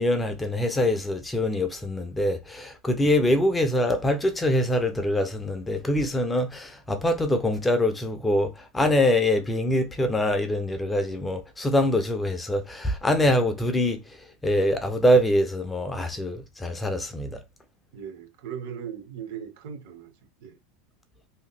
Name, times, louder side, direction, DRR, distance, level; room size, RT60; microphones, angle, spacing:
voice 1, 0.0-17.4, left 1 dB, 10° left, 0.3 m, -24 dB
voice 2, 17.9-20.1 20.4-20.6, right 8 dB, 60° right, 0.7 m, -38 dB
2.7 x 2.1 x 3.6 m
supercardioid pair, 160°, 0 cm